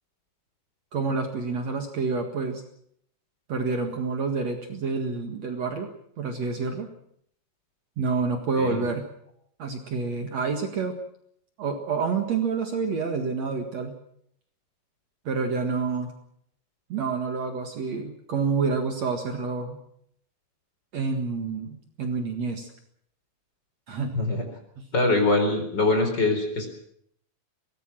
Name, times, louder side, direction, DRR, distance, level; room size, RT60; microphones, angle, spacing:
voice 1, 0.9-2.6 3.5-5.9 6.2-6.9 8.0-9.1 9.6-11.0 11.6-14.0 15.3-16.1 16.9-19.8 20.9-22.7 23.9-24.1 24.8-24.9, right 4 dB, 55° right, 5 dB, 2.7 m, -28 dB
voice 2, 24.1-24.4 24.9-26.7, left 2 dB, 30° left, 5 dB, 4.7 m, -23 dB
23.0 x 18.5 x 7.6 m, 0.68 s
omnidirectional pair, 4.1 m